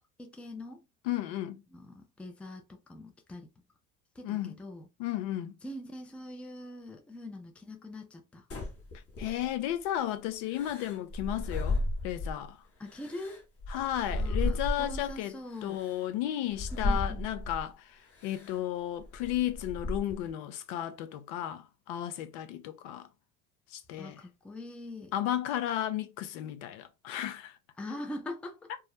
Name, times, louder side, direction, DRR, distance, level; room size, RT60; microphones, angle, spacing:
voice 1, 0.2-0.8 1.7-3.5 4.2-4.9 5.6-8.4 12.8-13.5 14.2-15.8 16.8-17.3 24.0-25.1 27.8-28.6, left 1 dB, 5° left, 0.4 m, -43 dB
voice 2, 1.0-1.6 4.2-4.6 5.0-5.5 9.2-12.6 13.7-23.1 23.7-24.2 25.1-27.6, left 12 dB, 65° left, 0.6 m, -34 dB
sound 1, 8.5-9.7 10.5-12.5 12.9-15.1 15.8-15.9 16.5-17.7 18.2-18.5 19.0-20.3, left 2 dB, 30° left, 1.0 m, -34 dB
2.4 x 2.0 x 2.9 m
hypercardioid pair, 80°, 46 cm